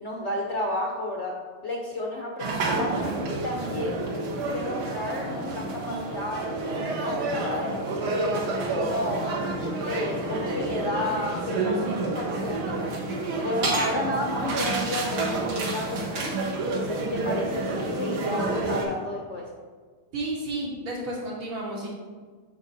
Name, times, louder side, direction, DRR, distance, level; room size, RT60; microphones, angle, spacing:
voice 1, 0.0-1.4 1.6-3.0 3.3-4.0 4.5-8.4 8.7-9.3 9.8-12.9 13.4-16.3 16.7-19.5, left 1 dB, 65° left, -2 dB, 0.7 m, -32 dB
sound 1, 2.4-18.8, right 2 dB, 90° right, 2.1 m, -29 dB
voice 2, 20.1-21.9, right 1 dB, 70° right, -8 dB, 2.0 m, -32 dB
9.3 x 6.0 x 2.7 m, 1.5 s
omnidirectional pair, 2.3 m